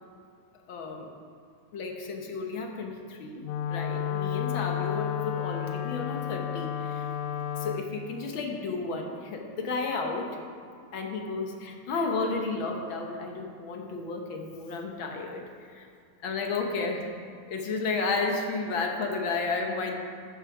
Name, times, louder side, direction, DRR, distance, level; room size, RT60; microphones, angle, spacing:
voice 1, 0.7-1.1 1.7-7.1 7.6-10.4 10.9-15.4 15.7-15.9 16.2-17.1 17.5-19.9, left 3 dB, 55° left, 2 dB, 1.5 m, -32 dB
Wind instrument woodwind instrument, 3.4-7.9, left 10 dB, 80° left, 1.6 m, -31 dB
12.5 x 11.0 x 4.9 m, 2.3 s
omnidirectional pair, 3.5 m